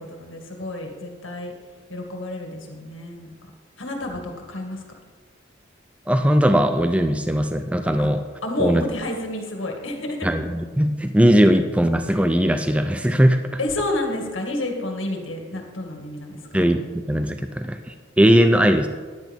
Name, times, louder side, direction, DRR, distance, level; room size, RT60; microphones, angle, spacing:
voice 1, 0.1-1.5 1.9-3.3 3.8-4.8 8.0-8.1 8.4-10.3 13.6-16.6, left 1 dB, 90° left, 2 dB, 2.0 m, -29 dB
voice 2, 6.1-8.2 8.6-8.8 10.2-13.4 16.5-16.8 17.1-18.9, equal, 5° right, 7 dB, 0.4 m, -19 dB
15.0 x 10.5 x 3.6 m, 1.5 s
head